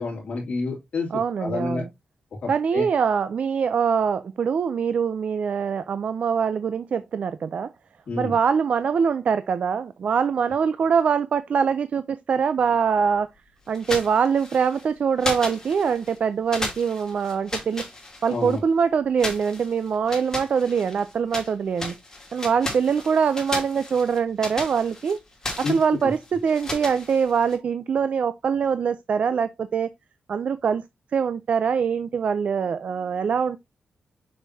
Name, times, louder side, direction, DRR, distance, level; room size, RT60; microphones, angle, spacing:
voice 1, 0.0-1.1 1.4-1.8 2.4-2.8 8.1-8.3 18.3-18.6 25.6-26.1, left 4 dB, 55° left, 2.9 m, -29 dB
voice 2, 1.1-1.9 2.5-7.7 8.2-13.3 13.7-17.8 18.2-21.9 22.3-25.2 25.6-29.9 30.3-30.8 31.1-33.6, right 6 dB, 55° right, 0.5 m, -23 dB
sound 1, 13.7-14.9 15.2-16.2 16.5-18.6 19.2-21.5 21.8-27.6, left 2 dB, 20° left, 2.8 m, -34 dB
6.8 x 6.6 x 2.7 m
wide cardioid pair, 145°, 3 cm